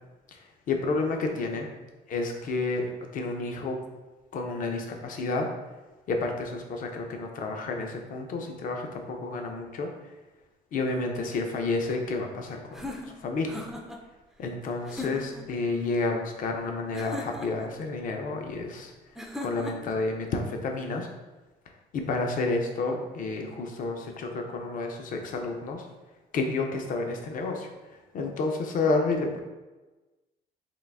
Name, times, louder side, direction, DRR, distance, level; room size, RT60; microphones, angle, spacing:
voice 1, 0.7-1.7 2.1-3.8 4.3-5.5 6.1-9.9 10.7-13.5 14.4-18.9 19.4-21.1 21.9-25.9 26.3-27.7 28.1-29.4, left 3 dB, 55° left, 3 dB, 0.7 m, -30 dB
sound 1, 12.7-14.0 14.9-15.5 16.9-17.7 19.2-20.0, left 1 dB, ahead, 0.4 m, -38 dB
3.8 x 2.5 x 3.4 m, 1.1 s
cardioid pair, 110°, 17 cm